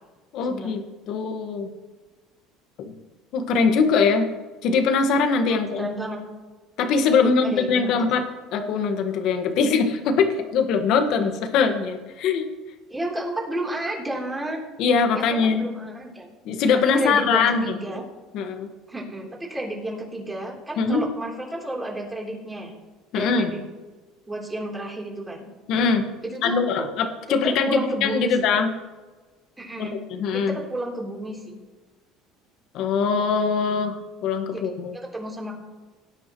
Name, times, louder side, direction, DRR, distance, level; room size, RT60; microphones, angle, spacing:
voice 1, 0.3-0.8 1.1-1.7 2.8-2.9 3.3-4.3 4.6-5.9 6.8-8.2 8.5-12.4 14.8-15.7 16.4-18.0 18.3-18.7 20.8-21.0 23.1-23.5 25.7-26.1 26.4-28.7 29.8-30.6 32.7-35.0, left 5 dB, 60° left, 5 dB, 1.7 m, -22 dB
voice 2, 5.5-6.2 7.2-8.1 12.9-14.6 15.1-16.3 17.0-18.0 18.9-22.7 23.1-23.6 24.3-25.4 26.2-26.9 27.3-28.4 29.6-30.0 30.3-31.6 34.5-35.5, right 1 dB, 10° right, -2 dB, 3.7 m, -32 dB
18.0 x 9.9 x 3.2 m, 1.3 s
supercardioid pair, 105°, 0 cm